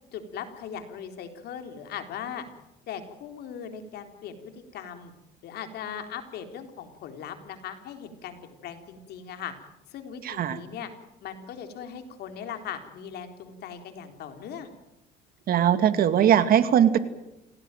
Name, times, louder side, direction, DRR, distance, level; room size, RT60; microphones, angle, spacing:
voice 1, 0.1-2.5 2.9-5.1 5.4-9.5 9.9-10.9 11.2-14.7, left 8 dB, 75° left, 6 dB, 4.0 m, -39 dB
voice 2, 10.2-10.6 15.5-17.0, right 9 dB, 60° right, 11 dB, 2.3 m, -20 dB
28.0 x 17.5 x 9.2 m, 0.91 s
cardioid pair, 110°, 17 cm